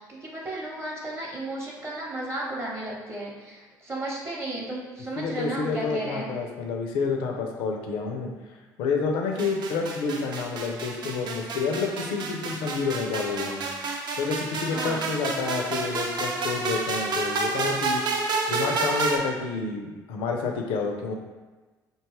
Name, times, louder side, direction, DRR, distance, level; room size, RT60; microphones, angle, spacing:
voice 1, 0.0-6.3 14.7-15.1, right 1 dB, 25° right, -3 dB, 0.8 m, -34 dB
voice 2, 5.2-8.3 8.8-13.6 14.2-18.0 18.5-21.1, left 4 dB, 65° left, 2 dB, 0.4 m, -29 dB
sound 1, 9.4-19.2, right 3 dB, 50° right, 0.5 m, -30 dB
2.6 x 2.3 x 3.1 m, 1.2 s
hypercardioid pair, 50°, 10 cm